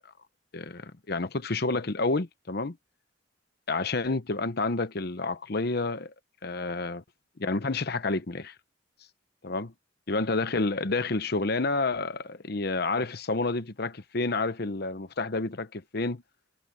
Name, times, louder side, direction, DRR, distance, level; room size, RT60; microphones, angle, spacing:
voice 1, 0.5-2.8 3.7-6.1 6.4-7.0 7.4-8.5 9.4-9.7 10.1-16.2, left 3 dB, 55° left, 1.0 m, -29 dB
head